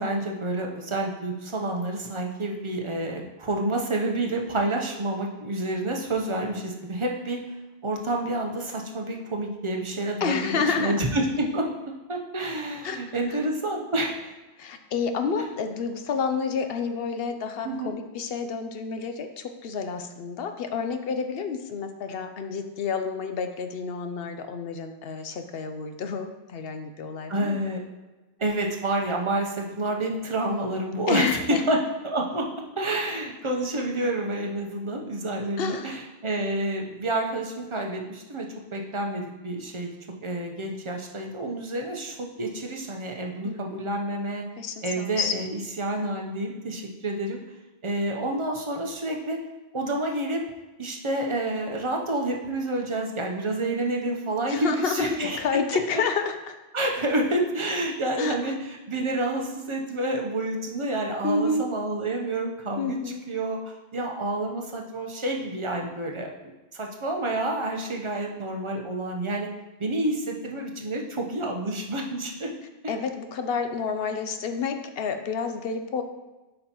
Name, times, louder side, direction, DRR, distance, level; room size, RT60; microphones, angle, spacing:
voice 1, 0.0-7.4 7.8-11.7 12.1-14.3 15.3-15.4 17.6-17.9 27.3-27.8 28.4-32.5 32.8-44.4 44.8-47.4 47.8-49.4 49.7-50.4 50.8-55.4 55.9-56.0 56.7-63.0 63.3-63.6 63.9-69.5 69.8-72.5 72.8-72.9, right 1 dB, 30° right, 1 dB, 0.8 m, -29 dB
voice 2, 10.2-11.0 12.8-13.0 13.3-13.4 14.6-27.6 31.1-31.6 35.6-36.0 43.4-43.9 44.6-45.3 54.5-56.6 58.2-58.3 61.2-61.7 62.8-63.2 72.9-76.0, left 5 dB, 70° left, 7 dB, 0.8 m, -29 dB
8.4 x 5.3 x 2.9 m, 1.1 s
omnidirectional pair, 1.0 m